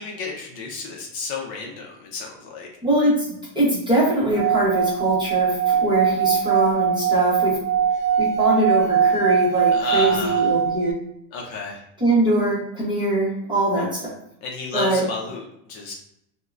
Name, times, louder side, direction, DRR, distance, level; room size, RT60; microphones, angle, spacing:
voice 1, 0.0-2.7 9.7-10.5 11.3-11.8 14.4-15.9, left 4 dB, 50° left, 0 dB, 0.6 m, -32 dB
voice 2, 2.8-3.3 3.5-7.6 8.2-11.0 12.0-14.0 14.7-15.0, right 1 dB, 10° right, -7 dB, 0.7 m, -22 dB
Singing / Glass, 4.3-10.9, right 7 dB, 80° right, 0.6 m, -21 dB
3.4 x 2.1 x 2.3 m, 0.78 s
supercardioid pair, 150°, 48 cm